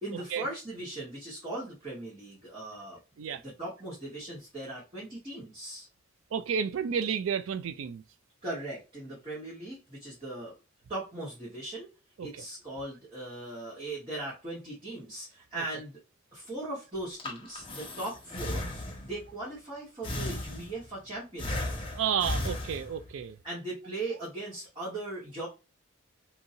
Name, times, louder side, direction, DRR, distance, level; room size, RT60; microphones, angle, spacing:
voice 1, 0.0-3.0 3.4-5.9 8.4-10.5 10.9-11.9 12.2-16.0 16.3-18.7 19.0-21.8 23.4-25.5, right 2 dB, 25° right, 1.4 m, -39 dB
voice 2, 6.3-8.0 12.2-12.3 15.6-15.7 21.9-23.4, right 7 dB, 70° right, 0.3 m, -31 dB
Breathing, 17.0-19.3 20.0-21.0 21.4-23.2, left 1 dB, 25° left, 0.7 m, -35 dB
2.8 x 2.7 x 2.7 m
head